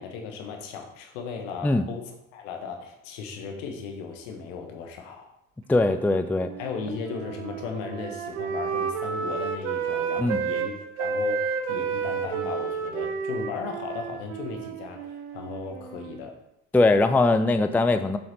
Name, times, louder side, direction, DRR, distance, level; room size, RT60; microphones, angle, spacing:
voice 1, 0.0-5.3 6.6-16.3, left 5 dB, 65° left, 3 dB, 1.5 m, -36 dB
voice 2, 5.7-6.5 10.2-10.4 16.7-18.2, left 2 dB, 5° left, 10 dB, 0.4 m, -21 dB
Wind instrument woodwind instrument, 5.8-10.7 11.0-16.3, right 6 dB, 70° right, 1.0 m, -31 dB
7.3 x 6.1 x 4.2 m, 0.84 s
figure-of-eight pair, 55°, 39 cm